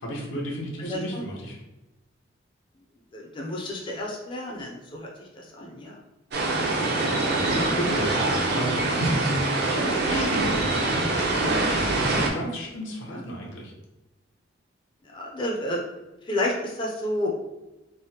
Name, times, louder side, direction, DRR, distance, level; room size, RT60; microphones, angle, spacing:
voice 1, 0.0-1.6 6.4-12.0 12.3-13.7, equal, 90° left, -2 dB, 0.8 m, -34 dB
voice 2, 0.8-1.2 3.1-5.1 5.4-6.0 13.1-13.5 15.1-15.8 16.3-17.4, left 1 dB, 25° left, -2 dB, 0.4 m, -31 dB
sound 1, 6.3-12.3, right 2 dB, 55° right, 0.5 m, -24 dB
3.3 x 2.0 x 2.7 m, 1.0 s
head